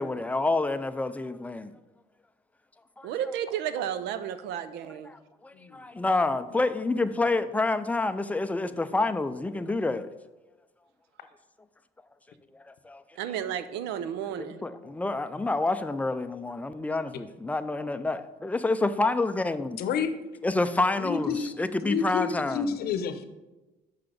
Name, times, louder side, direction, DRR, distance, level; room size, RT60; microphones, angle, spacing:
voice 1, 0.0-1.7 3.0-3.1 5.0-10.1 12.5-13.0 14.4-19.8 20.4-22.7, left 2 dB, 10° left, 0.4 m, -28 dB
voice 2, 3.0-5.1 13.2-14.6, right 9 dB, 85° right, 0.6 m, -32 dB
voice 3, 5.5-5.9 9.5-9.7 14.8-14.9 19.8-20.1 21.0-23.2, left 6 dB, 70° left, 0.7 m, -30 dB
6.0 x 5.7 x 5.1 m
cardioid pair, 110°, 17 cm